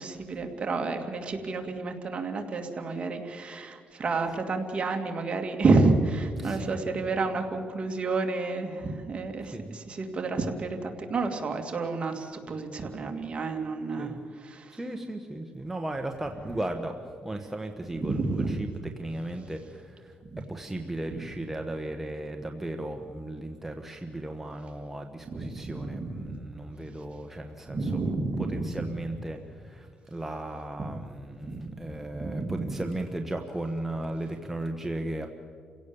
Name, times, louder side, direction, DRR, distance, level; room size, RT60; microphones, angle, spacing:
voice 1, 0.0-14.2 14.4-14.8 18.0-18.5 20.3-20.4 21.1-21.2 25.3-26.4 27.7-29.0 30.8-31.0 31.4-31.7 32.1-32.8, right 3 dB, 35° right, 4 dB, 2.5 m, -30 dB
voice 2, 6.4-6.8 9.5-9.8 14.0-14.2 14.8-18.7 19.0-28.0 28.4-35.3, right 1 dB, 10° right, 4 dB, 1.3 m, -36 dB
29.0 x 17.0 x 7.2 m, 2.1 s
cardioid pair, 110°, 3 cm